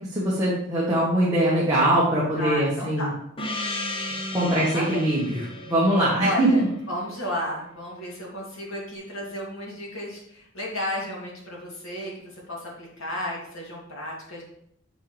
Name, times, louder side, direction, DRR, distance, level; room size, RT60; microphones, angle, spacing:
voice 1, 0.1-3.1 4.3-5.2 5.7-6.6, right 1 dB, 15° right, -7 dB, 1.5 m, -22 dB
voice 2, 2.4-3.2 4.1-5.1 6.2-14.4, left 1 dB, 80° left, -4 dB, 2.9 m, -33 dB
Gong, 3.4-7.7, left 1 dB, 25° left, 0.8 m, -35 dB
7.3 x 6.7 x 3.4 m, 0.72 s
head